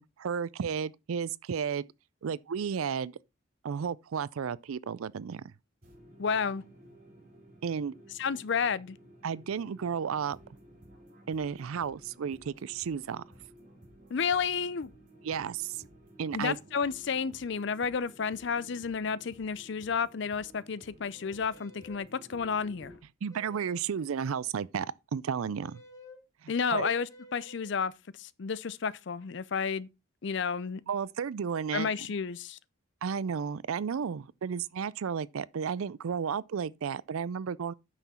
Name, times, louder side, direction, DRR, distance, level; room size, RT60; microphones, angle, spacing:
voice 1, 0.0-1.9 2.2-3.2 3.6-5.4 7.6-7.9 9.2-10.4 11.3-13.2 15.2-15.8 16.2-16.6 23.2-25.8 26.4-26.9 30.9-31.9 33.0-37.7, right 7 dB, 80° right, 0.4 m, -33 dB
sound 1, 5.8-23.0, right 1 dB, 40° right, 3.9 m, -55 dB
voice 2, 6.2-6.6 8.2-9.0 14.1-14.9 16.3-22.9 26.5-27.9 28.2-29.9 30.2-30.8 31.7-32.6, left 6 dB, 55° left, 0.5 m, -31 dB
sound 2, 21.1-22.1 23.3-23.9 25.6-26.2 27.1-27.7, left 1 dB, 15° left, 1.5 m, -53 dB
9.0 x 6.1 x 4.2 m
head